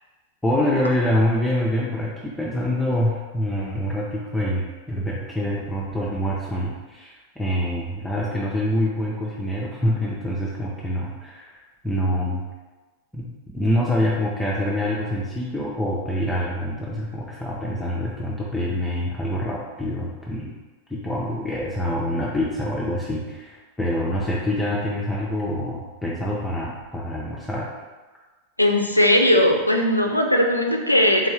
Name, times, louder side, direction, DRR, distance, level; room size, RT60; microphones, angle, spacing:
voice 1, 0.4-11.6 11.8-12.4 13.1-13.3 13.5-20.5 20.9-27.7, equal, 5° left, -5 dB, 0.5 m, -25 dB
voice 2, 28.6-31.3, left 1 dB, 85° left, 2 dB, 0.4 m, -18 dB
3.7 x 2.7 x 3.2 m, 1.3 s
figure-of-eight pair, 90°, 0 cm